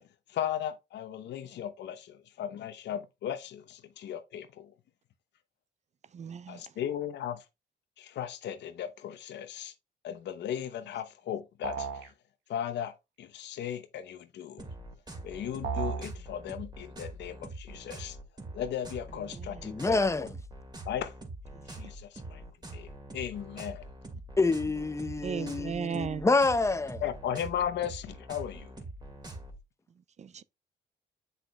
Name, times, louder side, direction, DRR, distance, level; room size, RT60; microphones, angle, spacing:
voice 1, 0.3-4.7 6.5-7.4 8.0-9.7 10.0-12.1 12.5-14.7 15.2-18.2 18.5-20.1 20.8-21.1 21.7-22.4 22.7-23.9 24.1-24.2 27.0-28.7, left 10 dB, 75° left, 0.8 m, -36 dB
voice 2, 6.1-6.6 19.3-19.6 21.5-21.6 25.2-26.3 30.2-30.4, right 7 dB, 40° right, 0.4 m, -36 dB
sound 1, 11.6-12.1 15.6-16.1, right 6 dB, 75° right, 1.2 m, -33 dB
sound 2, 14.6-29.6, right 2 dB, 25° right, 2.1 m, -44 dB
voice 3, 19.6-20.4 24.4-27.0, left 3 dB, 15° left, 0.7 m, -27 dB
7.4 x 6.5 x 2.3 m
supercardioid pair, 65°, 18 cm